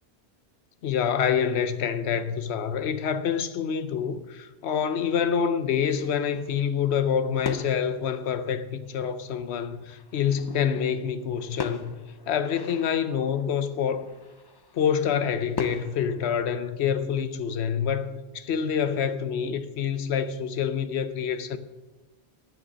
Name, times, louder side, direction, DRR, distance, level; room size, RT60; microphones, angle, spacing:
voice 1, 0.8-11.9 12.3-14.1 14.7-21.6, left 7 dB, 80° left, 1.0 m, -27 dB
sound 1, 5.8-8.2 8.8-8.9 9.2-17.1, left 4 dB, 30° left, 0.5 m, -41 dB
9.7 x 7.9 x 6.2 m
omnidirectional pair, 1.1 m